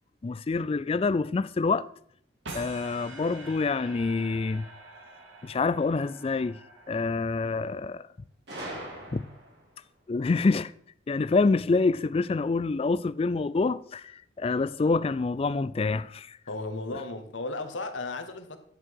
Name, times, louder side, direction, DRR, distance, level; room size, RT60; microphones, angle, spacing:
voice 1, 0.2-1.9 2.5-4.7 5.4-6.6 6.9-8.1 9.1-9.2 10.1-10.7 11.1-16.4, left 3 dB, 30° left, 0.3 m, -26 dB
sound 1, 2.4-7.7, right 2 dB, 90° right, 2.0 m, -46 dB
Gunshot gunfire, 8.5-9.7, right 1 dB, 65° right, 3.5 m, -40 dB
voice 2, 16.5-18.6, left 2 dB, 90° left, 1.2 m, -35 dB
10.0 x 8.0 x 4.7 m
head